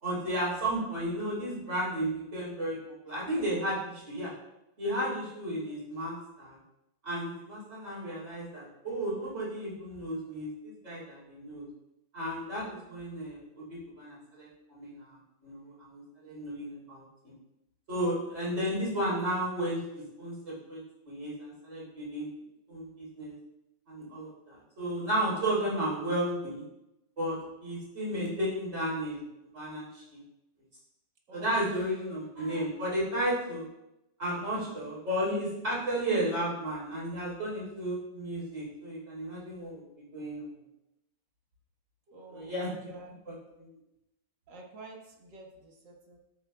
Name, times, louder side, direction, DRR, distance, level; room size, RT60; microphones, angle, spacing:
voice 1, 0.0-4.3 4.8-6.6 7.0-11.7 12.1-17.3 17.9-22.3 22.7-23.3 23.9-26.6 27.2-29.2 29.5-30.2 31.3-33.7 34.2-40.5 42.3-42.7 43.3-43.7, right 1 dB, 45° right, -7 dB, 4.4 m, -33 dB
voice 2, 12.5-12.8 31.3-32.2 42.1-43.1 44.5-46.2, right 2 dB, 80° right, 0 dB, 2.2 m, -50 dB
13.5 x 8.6 x 2.3 m, 0.90 s
omnidirectional pair, 1.9 m